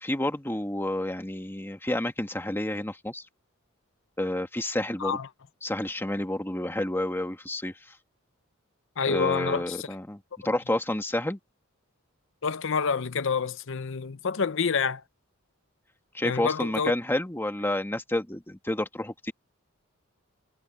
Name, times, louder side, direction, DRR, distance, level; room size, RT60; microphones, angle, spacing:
voice 1, 0.0-3.2 4.2-5.2 5.6-7.7 9.1-11.4 16.1-19.3, left 1 dB, 10° left, 1.6 m, -29 dB
voice 2, 9.0-9.9 12.4-15.0 16.2-16.9, left 5 dB, 65° left, 0.7 m, -28 dB
head